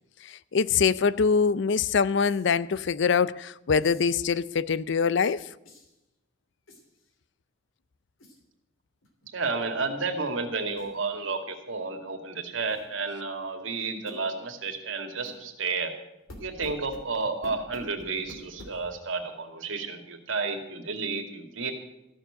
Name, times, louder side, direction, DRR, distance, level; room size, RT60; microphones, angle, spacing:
voice 1, 0.2-5.5, left 5 dB, 65° left, 0.5 m, -24 dB
sound 1, 2.2-2.5 3.8-4.2 5.6-6.0 6.7-7.1 8.2-8.4 9.0-9.3 9.6-9.7 10.7-11.0 12.7-12.9 14.1-14.2 15.2-15.4 16.3-19.0, left 1 dB, 90° left, 3.0 m, -48 dB
voice 2, 9.3-15.9 16.4-21.7, right 4 dB, 80° right, 2.3 m, -31 dB
15.0 x 7.1 x 10.0 m
head